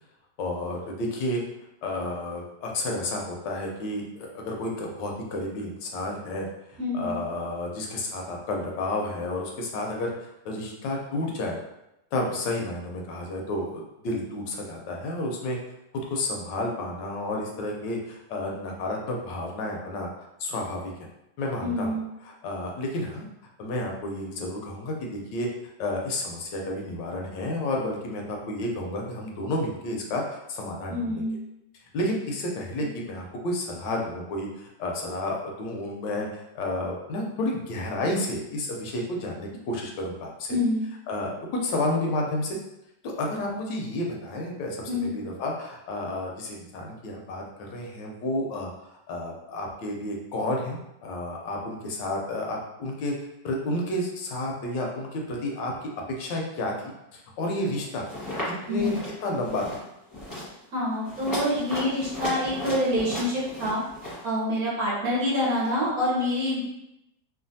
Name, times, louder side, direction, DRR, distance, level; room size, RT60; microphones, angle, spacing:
voice 1, 0.4-1.4 1.8-6.5 6.9-11.6 12.1-15.6 16.1-20.1 20.4-20.9 21.4-23.2 23.6-25.5 25.8-31.2 31.9-40.6 41.1-42.6 43.0-48.7 49.1-53.2 53.4-58.1 58.4-58.9 59.2-59.8, left 1 dB, 75° left, 0 dB, 1.2 m, -31 dB
voice 2, 6.8-7.2 21.6-22.0 30.9-31.4 40.5-40.8 43.4-43.5 44.9-45.1 58.7-59.0 60.7-63.8 64.2-66.6, left 1 dB, 60° right, -6 dB, 1.1 m, -26 dB
sound 1, 58.1-58.5 58.8-59.1 59.4-59.8 60.1-60.5 61.0-64.2, left 1 dB, 15° left, 0.7 m, -35 dB
3.2 x 2.3 x 2.6 m, 0.87 s
omnidirectional pair, 2.0 m